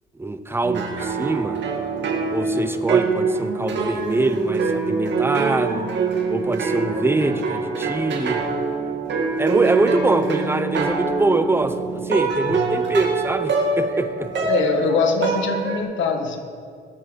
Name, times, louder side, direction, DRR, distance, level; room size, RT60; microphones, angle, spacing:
voice 1, 0.2-1.6 2.3-5.9 6.3-8.4 9.4-14.5, right 2 dB, 10° right, 0.9 m, -24 dB
sound 1, 0.6-15.8, right 4 dB, 65° right, 2.1 m, -24 dB
voice 2, 14.5-16.4, left 4 dB, 75° left, 1.6 m, -22 dB
21.0 x 7.5 x 4.7 m
cardioid pair, 90°, 20 cm